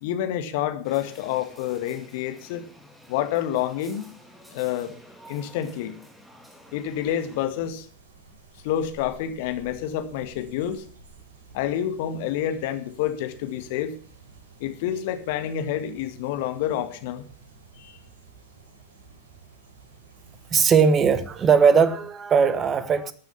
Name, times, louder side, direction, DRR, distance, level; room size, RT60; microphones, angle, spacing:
voice 1, 0.0-2.6 3.1-4.0 4.5-4.9 5.3-6.0 6.7-7.9 8.6-10.8 11.5-13.9 14.6-17.2 17.8-18.0, left 10 dB, 50° left, 1.9 m, -28 dB
sound 1, 0.8-7.5, equal, 5° right, 2.8 m, -50 dB
sound 2, 6.5-21.6, right 4 dB, 60° right, 5.6 m, -51 dB
voice 2, 20.5-23.1, right 6 dB, 25° right, 1.4 m, -19 dB
14.5 x 9.5 x 7.2 m
figure-of-eight pair, 90°, 0 cm